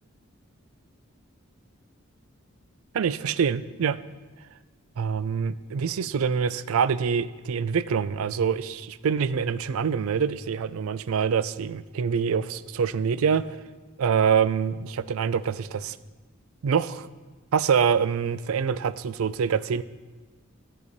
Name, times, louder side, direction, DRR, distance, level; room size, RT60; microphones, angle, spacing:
voice 1, 2.9-4.0 5.0-13.4 14.0-16.0 16.6-17.1 17.5-19.8, right 6 dB, 80° right, 16 dB, 0.4 m, -25 dB
14.0 x 6.7 x 4.1 m, 1.4 s
head